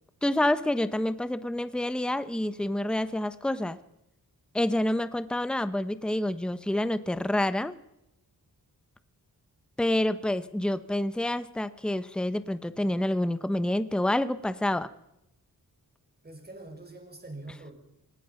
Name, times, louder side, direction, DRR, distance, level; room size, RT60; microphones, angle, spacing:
voice 1, 0.2-3.8 4.5-7.7 9.8-14.9, left 1 dB, ahead, 12 dB, 0.9 m, -28 dB
voice 2, 16.2-17.7, right 2 dB, 25° right, 4 dB, 5.8 m, -44 dB
26.0 x 19.0 x 5.8 m, 0.86 s
wide cardioid pair, 85°, 37 cm